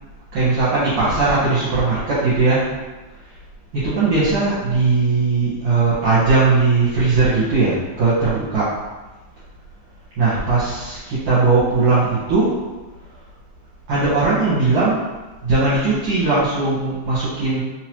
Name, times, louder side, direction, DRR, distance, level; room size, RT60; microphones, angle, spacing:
voice 1, 0.3-2.7 3.7-8.7 10.2-12.5 13.9-15.0 15.4-17.6, right 3 dB, 60° right, -11 dB, 1.9 m, -18 dB
4.4 x 2.9 x 3.0 m, 1.2 s
omnidirectional pair, 3.4 m